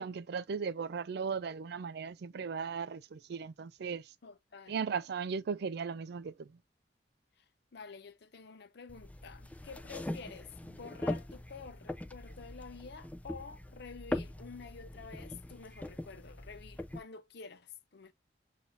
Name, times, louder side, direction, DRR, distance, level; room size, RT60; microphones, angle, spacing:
voice 1, 0.0-4.0 4.7-6.5, right 6 dB, 65° right, 0.4 m, -37 dB
voice 2, 4.2-4.8 7.4-7.5 7.7-18.1, left 5 dB, 65° left, 0.7 m, -49 dB
sound 1, 8.9-17.0, left 1 dB, 10° left, 0.4 m, -41 dB
7.1 x 2.7 x 2.6 m
head